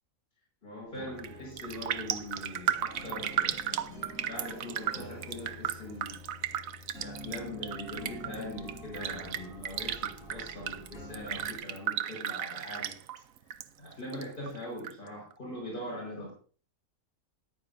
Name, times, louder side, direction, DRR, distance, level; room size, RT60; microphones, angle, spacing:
voice 1, 0.6-6.2 7.0-13.0 13.8-16.3, left 1 dB, 35° left, -2 dB, 5.4 m, -42 dB
sound 1, 0.8-11.6, left 1 dB, 65° left, 4.5 m, -47 dB
Raindrop, 1.1-1.3 1.6-13.6 13.9-14.9 15.3-15.4, right 10 dB, 80° right, 1.1 m, -35 dB
14.0 x 11.0 x 2.6 m, 0.39 s
omnidirectional pair, 1.4 m